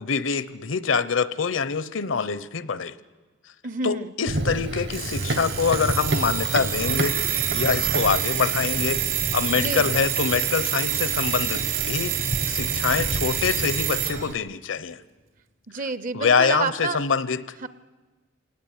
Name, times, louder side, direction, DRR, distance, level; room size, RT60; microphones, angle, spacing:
voice 1, 0.0-2.9 3.8-9.0 9.3-15.0 16.1-17.4, left 5 dB, 75° left, 16 dB, 0.9 m, -25 dB
voice 2, 3.6-4.1 9.5-9.9 15.7-17.0 17.6-17.7, right 3 dB, 45° right, 15 dB, 0.7 m, -29 dB
Run, 4.3-14.3, right 1 dB, 60° right, 1.3 m, -31 dB
Alarm, 4.9-14.2, right 11 dB, 80° right, 4.5 m, -27 dB
26.5 x 18.5 x 9.3 m, 1.3 s
head